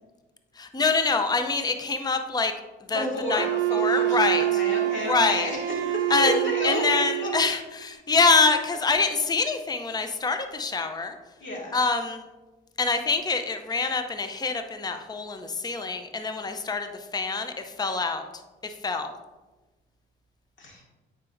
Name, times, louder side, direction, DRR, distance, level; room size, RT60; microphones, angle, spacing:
voice 1, 0.6-2.5 2.9-3.5 3.7-4.4 5.1-5.5 6.1-11.2 11.7-12.2 12.8-18.2 18.6-19.1, left 4 dB, 20° left, 7 dB, 0.6 m, -25 dB
voice 2, 2.9-7.3 11.4-11.8 20.6-20.8, left 1 dB, 65° left, -2 dB, 2.0 m, -32 dB
Wind instrument woodwind instrument, 3.4-7.5, right 15 dB, 60° right, 0.6 m, -26 dB
8.7 x 5.0 x 2.6 m, 1.2 s
supercardioid pair, 65°, 21 cm